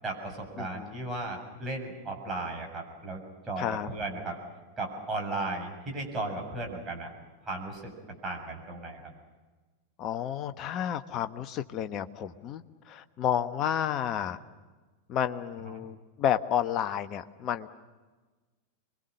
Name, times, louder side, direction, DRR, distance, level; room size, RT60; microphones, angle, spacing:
voice 1, 0.0-4.4 4.8-7.1 7.5-7.9 8.2-9.0 15.6-15.9, right 2 dB, 20° right, 1 dB, 7.2 m, -35 dB
voice 2, 0.6-1.0 3.6-3.9 10.0-14.4 15.1-17.7, left 10 dB, 35° left, 9 dB, 1.3 m, -31 dB
26.5 x 23.0 x 6.6 m, 1.3 s
figure-of-eight pair, 90°, 0 cm